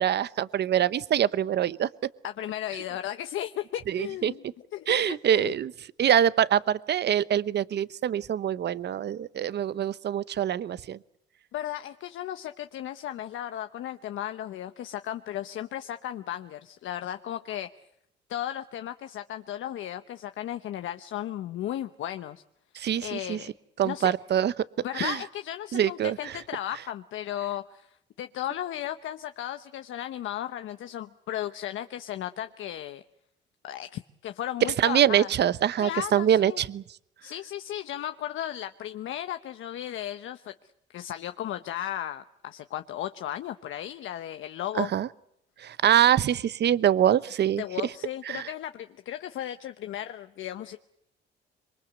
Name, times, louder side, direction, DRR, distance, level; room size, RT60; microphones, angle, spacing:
voice 1, 0.0-2.1 3.9-4.3 4.9-5.7 6.0-11.0 22.8-23.4 23.8-24.5 24.9-25.2 25.7-26.2 34.8-36.8 44.8-45.1 45.6-47.6 48.3-48.5, right 10 dB, 60° right, 18 dB, 0.9 m, -24 dB
voice 2, 2.2-4.4 4.7-5.6 11.5-17.7 18.3-22.4 23.0-23.5 23.8-24.1 24.8-33.0 33.6-35.3 35.8-36.6 37.2-40.5 40.9-44.9 47.6-50.8, left 12 dB, 80° left, 9 dB, 1.0 m, -35 dB
26.0 x 23.0 x 8.1 m, 0.76 s
cardioid pair, 90°, 20 cm